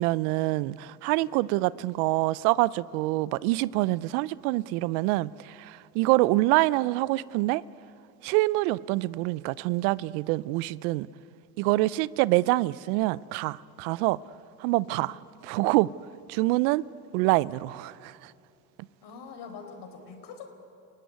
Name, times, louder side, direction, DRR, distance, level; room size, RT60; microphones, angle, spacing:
voice 1, 0.0-7.6 8.2-11.1 11.6-14.2 14.6-15.1 15.5-15.9 16.3-16.8 17.1-18.3, right 19 dB, 75° right, 0.6 m, -26 dB
voice 2, 19.0-20.5, left 5 dB, 60° left, 4.5 m, -44 dB
30.0 x 16.5 x 9.6 m
supercardioid pair, 80°, 45 cm